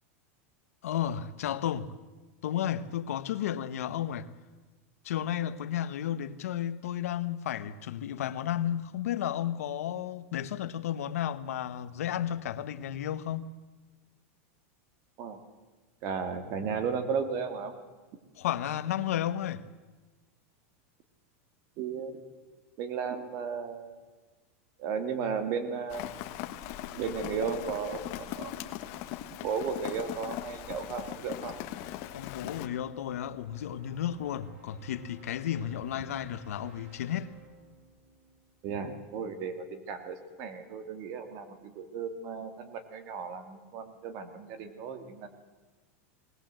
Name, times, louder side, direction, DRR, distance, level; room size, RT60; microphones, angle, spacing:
voice 1, 0.8-1.9 2.4-4.3 5.0-13.5 18.4-19.6 32.1-37.3, left 10 dB, 90° left, 1.1 m, -33 dB
voice 2, 16.0-17.7 21.8-22.2 22.8-24.0 24.8-26.0 27.0-28.7 29.4-31.5 38.6-45.3, right 6 dB, 40° right, 2.3 m, -35 dB
Rain, 25.9-32.7, left 12 dB, 45° left, 1.4 m, -40 dB
sound 1, 31.4-39.2, equal, 70° right, 6.6 m, -58 dB
20.0 x 19.5 x 7.7 m
supercardioid pair, 160°, 8 cm